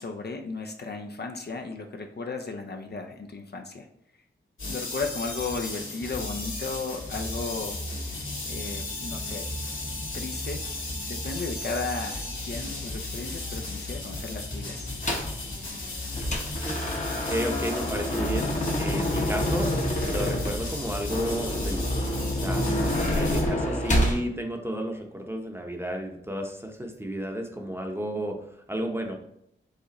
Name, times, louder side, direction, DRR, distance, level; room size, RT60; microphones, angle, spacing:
voice 1, 0.0-3.9 4.7-7.8 8.1-9.5 10.1-10.6 11.1-14.9, left 3 dB, 55° left, 3 dB, 0.6 m, -35 dB
sound 1, 4.6-23.4, left 2 dB, 80° left, 1.6 m, -34 dB
sound 2, 15.0-15.4 15.8-24.2, left 1 dB, 35° left, 0.9 m, -27 dB
voice 2, 17.3-19.7 20.1-21.9 22.2-22.6 23.2-28.4 28.7-29.2, right 1 dB, 10° right, 2 dB, 0.8 m, -32 dB
5.0 x 2.5 x 4.1 m, 0.74 s
cardioid pair, 60°, 21 cm